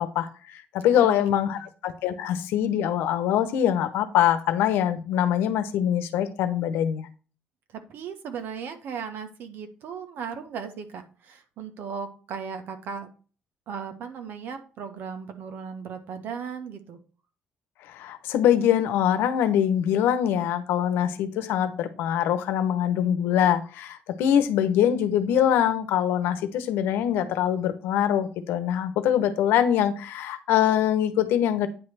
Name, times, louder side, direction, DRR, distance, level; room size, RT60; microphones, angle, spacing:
voice 1, 0.0-7.1 17.9-31.7, left 10 dB, 85° left, 11 dB, 0.9 m, -23 dB
voice 2, 7.7-13.1 13.7-17.0, right 6 dB, 70° right, 8 dB, 1.4 m, -37 dB
9.4 x 3.3 x 6.1 m, 0.37 s
cardioid pair, 90°, 4 cm